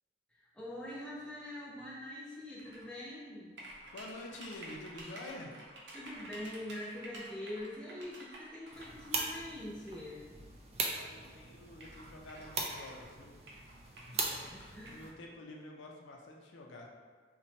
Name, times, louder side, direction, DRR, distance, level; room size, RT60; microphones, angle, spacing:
voice 1, 0.3-3.6 5.9-10.2 14.5-15.0, left 1 dB, 5° left, -8 dB, 0.6 m, -44 dB
sound 1, 2.6-2.9 3.6-9.1 9.9-10.0 10.9-11.0 11.2-11.3 11.8-13.1 13.5-15.1, right 1 dB, 70° right, 0.7 m, -51 dB
voice 2, 3.6-5.6 10.9-13.4 13.8-16.9, left 2 dB, 75° left, 0 dB, 0.4 m, -49 dB
sound 2, 8.7-15.1, right 3 dB, 35° right, 0.3 m, -40 dB
4.0 x 2.1 x 2.7 m, 1.5 s
head